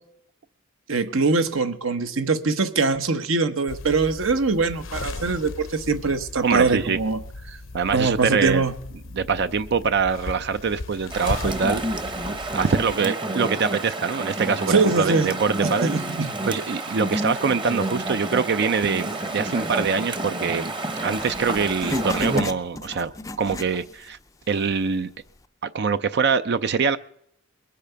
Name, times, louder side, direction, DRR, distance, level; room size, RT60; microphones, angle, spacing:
voice 1, 0.9-7.2 7.9-8.7 14.7-15.3 15.6-16.3, right 3 dB, 70° right, 9 dB, 1.1 m, -22 dB
sound 1, 3.7-13.0, left 2 dB, 65° left, 0.7 m, -37 dB
voice 2, 6.4-7.0 7.7-8.7 9.1-11.8 12.5-15.9 16.4-20.7 21.0-24.2 24.5-25.1 25.6-27.0, right 5 dB, 55° right, 12 dB, 0.5 m, -24 dB
Chatter / Stream, 11.1-22.4, right 1 dB, 25° right, 0.9 m, -29 dB
Writing, 21.2-24.2 24.5-24.6 25.3-25.4, left 2 dB, 15° left, 0.4 m, -36 dB
21.5 x 8.5 x 5.7 m, 0.73 s
head